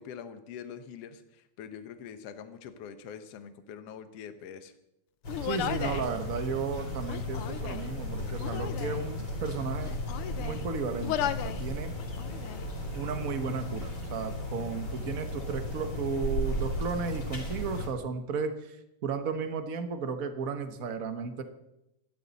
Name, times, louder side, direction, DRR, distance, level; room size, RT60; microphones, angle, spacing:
voice 1, 0.0-4.7, left 7 dB, 60° left, 9 dB, 2.0 m, -44 dB
sound 1, 5.2-17.9, left 1 dB, 40° left, 4.9 m, -35 dB
Human voice, 5.3-6.1 7.0-7.9 8.4-9.0 9.7-10.7 11.0-11.6 12.0-12.7, left 11 dB, 80° left, 1.2 m, -35 dB
voice 2, 5.4-9.9 10.4-11.9 12.9-18.8 19.0-21.4, right 5 dB, 70° right, 7 dB, 0.8 m, -34 dB
26.0 x 12.5 x 4.1 m, 0.88 s
omnidirectional pair, 3.4 m